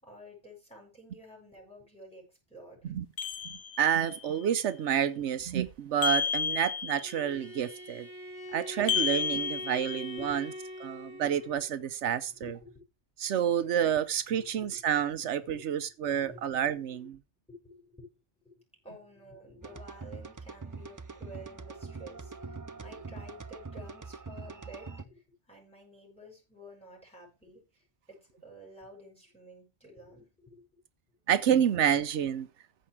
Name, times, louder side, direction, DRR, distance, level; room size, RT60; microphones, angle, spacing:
voice 1, 0.0-2.9 10.2-10.4 11.1-11.2 12.3-12.8 14.3-14.8 16.0-16.5 17.5-18.0 18.8-30.6, equal, 5° left, 6.4 m, -51 dB
sound 1, 3.2-4.2 6.0-7.3 8.9-10.4, left 6 dB, 55° left, 0.9 m, -32 dB
voice 2, 3.4-8.1 8.5-10.4 10.8-12.5 13.2-17.2 31.3-32.5, right 9 dB, 85° right, 1.0 m, -29 dB
Bowed string instrument, 7.0-11.7, equal, 30° left, 2.7 m, -44 dB
sound 2, 19.6-25.0, right 4 dB, 30° right, 0.3 m, -43 dB
14.5 x 5.2 x 4.8 m
omnidirectional pair, 1.2 m